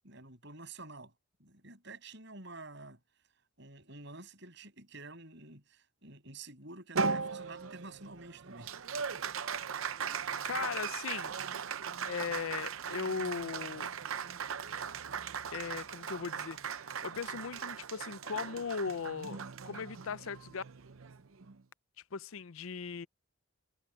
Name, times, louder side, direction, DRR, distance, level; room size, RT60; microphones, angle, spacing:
voice 1, 0.0-1.1 1.4-3.0 3.6-8.7, right 3 dB, 55° right, 7.9 m, -49 dB
Applause, 7.0-21.6, right 6 dB, 70° right, 0.7 m, -38 dB
voice 2, 10.4-11.4 12.1-13.9 15.5-16.6 17.0-20.6 22.1-23.1, left 5 dB, 70° left, 0.6 m, -38 dB
head